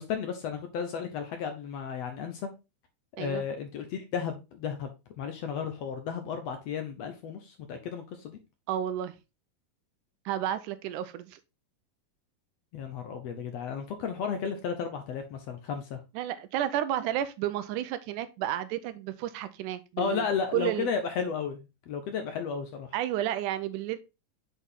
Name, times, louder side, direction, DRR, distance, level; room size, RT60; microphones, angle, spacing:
voice 1, 0.0-2.5 3.2-8.4 12.7-16.0 20.0-22.9, left 6 dB, 70° left, 1.7 m, -33 dB
voice 2, 8.7-9.1 10.3-11.4 16.1-20.3 20.5-20.9 22.9-24.0, right 12 dB, 80° right, 2.2 m, -31 dB
8.2 x 4.1 x 3.6 m
omnidirectional pair, 3.6 m